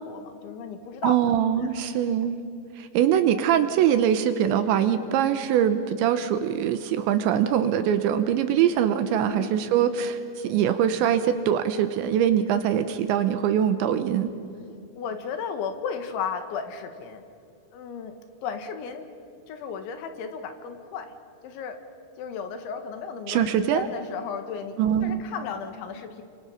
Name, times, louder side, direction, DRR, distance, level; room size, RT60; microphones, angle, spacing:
voice 1, 0.1-1.2 1.8-1.9 9.1-9.6 15.0-17.2 17.7-18.2 18.4-19.1 19.5-21.2 21.4-21.8 22.2-26.2, left 6 dB, 75° left, 7 dB, 3.7 m, -34 dB
voice 2, 1.0-2.4 2.8-14.3 23.3-23.9 24.8-25.2, right 9 dB, 75° right, 9 dB, 3.0 m, -23 dB
29.5 x 25.5 x 5.7 m, 2.5 s
omnidirectional pair, 5.7 m